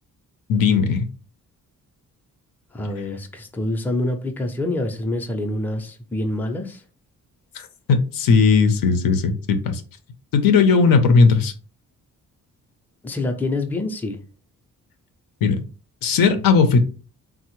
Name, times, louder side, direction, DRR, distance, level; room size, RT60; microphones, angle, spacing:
voice 1, 0.5-1.1 7.5-9.8 10.3-11.5 15.4-15.6 16.0-16.8, left 5 dB, 85° left, 8 dB, 0.6 m, -17 dB
voice 2, 2.7-6.8 13.0-14.2, left 2 dB, 5° left, 4 dB, 0.4 m, -26 dB
3.4 x 2.0 x 3.0 m, 0.36 s
cardioid pair, 110°, 33 cm